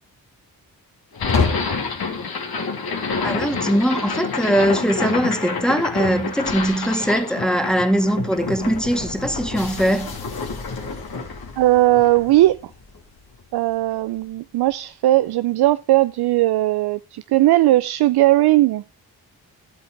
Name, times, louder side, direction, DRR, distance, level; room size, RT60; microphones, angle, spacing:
sound 1, 1.1-13.4, left 4 dB, 70° left, 2.9 m, -27 dB
voice 1, 3.2-10.2, equal, ahead, 1.9 m, -21 dB
voice 2, 11.6-12.6 13.5-18.8, right 16 dB, 80° right, 0.5 m, -18 dB
11.5 x 8.2 x 4.6 m
cardioid pair, 60°, 38 cm